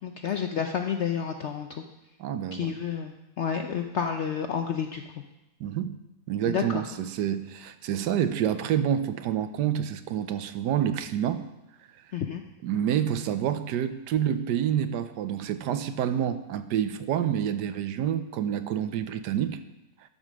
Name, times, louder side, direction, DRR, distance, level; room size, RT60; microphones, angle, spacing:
voice 1, 0.0-1.8 2.5-5.0 6.5-6.8 12.1-12.4, left 7 dB, 70° left, 5 dB, 0.6 m, -30 dB
voice 2, 2.2-2.8 5.6-6.0 6.3-11.4 12.6-19.6, right 9 dB, 80° right, 11 dB, 1.2 m, -28 dB
12.5 x 5.3 x 6.2 m, 0.94 s
omnidirectional pair, 1.8 m